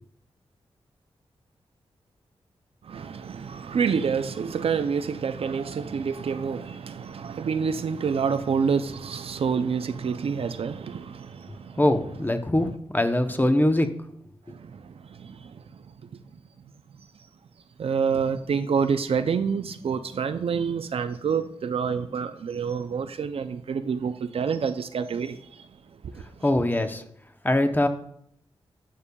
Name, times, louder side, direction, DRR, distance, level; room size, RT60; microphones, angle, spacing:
voice 1, 2.8-11.8 14.5-15.8 17.8-25.7 26.1-26.2, right 6 dB, 65° right, 0.4 m, -28 dB
voice 2, 11.8-13.9 26.4-27.0 27.4-27.9, left 1 dB, 20° left, 0.7 m, -22 dB
12.0 x 6.7 x 2.3 m
cardioid pair, 75°, 11 cm